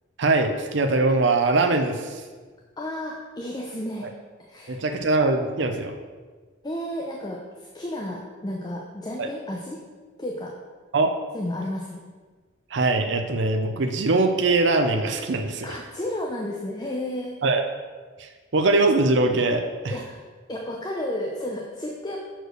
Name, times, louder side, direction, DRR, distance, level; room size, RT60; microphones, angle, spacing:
voice 1, 0.2-2.2 4.0-4.1 4.7-6.0 9.2-9.3 10.9-11.1 12.7-15.8 17.4-17.6 18.2-20.0, right 3 dB, 60° right, 5 dB, 0.6 m, -22 dB
voice 2, 2.8-4.1 4.5-4.8 6.6-9.8 10.2-10.5 11.3-12.0 15.6-17.4 19.9-20.2 20.5-22.2, left 1 dB, 20° left, 0 dB, 0.6 m, -32 dB
6.4 x 4.5 x 6.5 m, 1.4 s
head